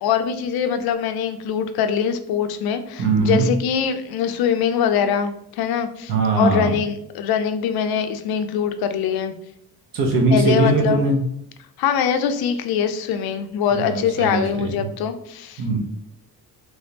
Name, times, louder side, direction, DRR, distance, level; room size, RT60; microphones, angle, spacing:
voice 1, 0.0-9.3 10.3-11.0 11.8-15.6, left 7 dB, 75° left, 9 dB, 0.5 m, -23 dB
voice 2, 3.0-3.5 6.1-6.7 9.9-11.2 13.7-14.9 15.6-15.9, right 3 dB, 65° right, 1 dB, 0.9 m, -20 dB
3.4 x 3.3 x 2.7 m, 0.72 s
cardioid pair, 165°, 37 cm